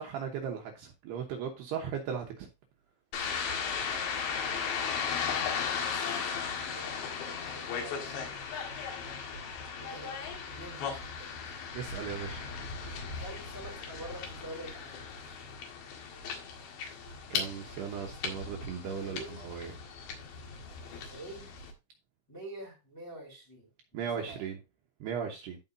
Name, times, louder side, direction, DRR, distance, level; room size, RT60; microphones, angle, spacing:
voice 1, 0.0-2.5 11.7-12.4 17.3-19.7 23.9-24.6 25.0-25.6, right 7 dB, 70° right, 1 dB, 2.8 m, -37 dB
sound 1, 3.1-21.7, left 6 dB, 70° left, 4.0 m, -37 dB
voice 2, 4.3-5.5 6.4-8.4 9.7-11.7 13.2-15.1 18.9-19.4 20.9-21.6 22.3-23.7 24.1-24.5, right 1 dB, 5° left, -1 dB, 3.2 m, -47 dB
15.0 x 5.0 x 2.7 m, 0.26 s
omnidirectional pair, 5.5 m